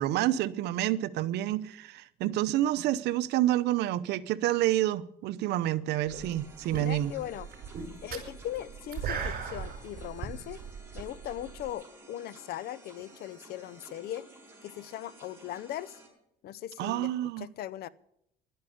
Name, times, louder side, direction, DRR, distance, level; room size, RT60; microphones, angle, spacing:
voice 1, 0.0-7.1 16.8-17.5, right 14 dB, 80° right, 0.8 m, -28 dB
sound 1, 6.1-16.1, right 1 dB, 15° right, 6.3 m, -53 dB
sound 2, 6.1-6.4 6.7-11.7, right 6 dB, 60° right, 5.1 m, -37 dB
voice 2, 6.7-7.5 8.0-10.6 10.9-14.3 14.6-16.0 16.4-17.1 17.4-17.9, left 12 dB, 65° left, 0.7 m, -39 dB
12.0 x 10.5 x 8.7 m
cardioid pair, 110°, 17 cm